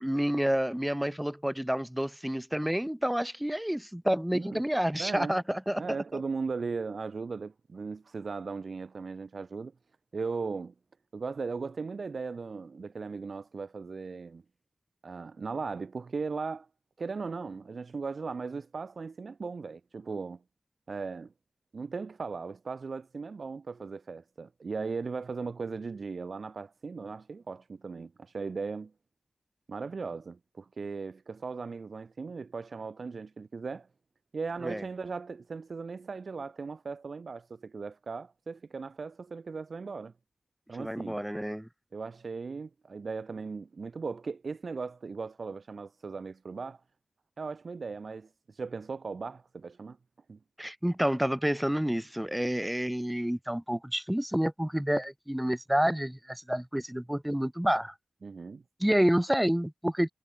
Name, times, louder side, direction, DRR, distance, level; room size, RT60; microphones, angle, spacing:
voice 1, 0.0-5.8 6.1-6.2 34.6-34.8 40.8-41.7 50.6-57.9 58.8-60.1, equal, 5° right, 0.4 m, -29 dB
voice 2, 4.3-4.7 5.0-5.4 5.8-9.7 10.1-10.7 11.1-14.4 15.0-16.7 17.0-20.4 20.9-21.3 21.7-28.9 29.7-33.9 34.3-40.1 40.7-41.2 41.9-46.8 47.4-50.0 50.3-50.4 58.2-58.6, right 4 dB, 65° right, 1.7 m, -37 dB
wide cardioid pair, 75°, 0 cm